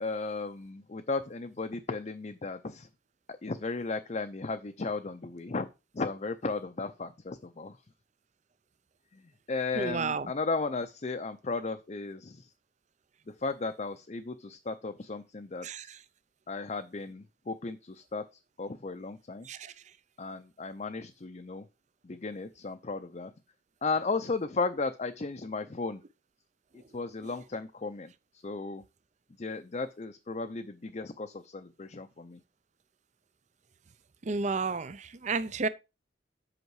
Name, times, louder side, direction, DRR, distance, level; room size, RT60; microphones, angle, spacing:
voice 1, 0.0-2.9 3.4-5.7 5.9-7.7 9.5-12.5 13.4-15.9 16.5-18.2 18.6-19.5 20.2-21.6 22.0-23.3 23.8-26.0 26.9-28.1 28.4-28.8 29.4-32.4, left 3 dB, 35° left, 0.5 m, -35 dB
voice 2, 9.7-10.3 15.6-16.0 19.5-19.7 34.2-35.7, right 4 dB, 35° right, 0.5 m, -32 dB
8.0 x 5.8 x 4.7 m
head